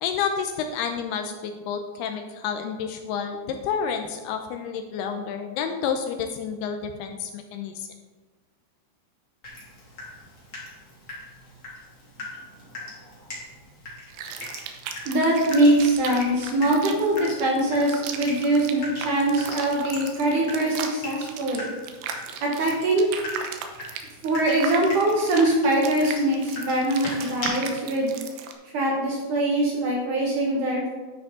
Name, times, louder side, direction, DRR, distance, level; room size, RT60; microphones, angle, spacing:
voice 1, 0.0-7.9, left 7 dB, 80° left, 5 dB, 2.5 m, -30 dB
Water tap faucet / Drip, 9.4-27.5, left 2 dB, 30° left, 2.8 m, -41 dB
sound 1, 14.1-28.5, right 6 dB, 85° right, 3.2 m, -37 dB
voice 2, 15.1-21.7 22.4-23.1 24.2-28.2 28.7-30.9, right 1 dB, 60° right, -2 dB, 2.4 m, -22 dB
10.0 x 9.8 x 3.7 m, 1.3 s
omnidirectional pair, 5.0 m